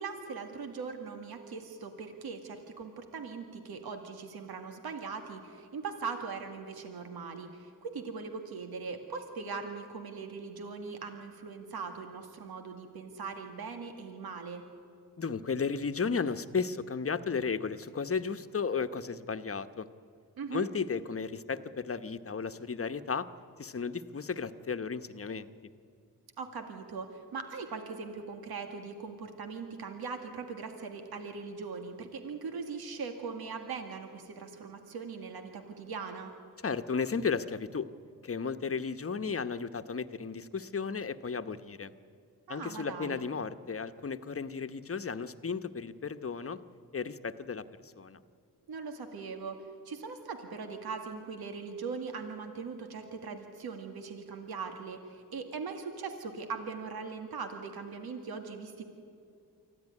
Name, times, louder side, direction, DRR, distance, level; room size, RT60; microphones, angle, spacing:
voice 1, 0.0-14.6 20.4-20.7 26.4-36.3 42.5-43.3 48.7-49.6 49.9-58.8, right 5 dB, 85° right, 5 dB, 2.1 m, -40 dB
voice 2, 15.2-19.9 20.5-23.3 23.6-25.5 36.6-37.9 38.2-41.9 42.5-46.6 46.9-48.2, left 5 dB, 40° left, 11 dB, 1.1 m, -34 dB
24.5 x 15.0 x 9.9 m, 2.4 s
cardioid pair, 65°, 36 cm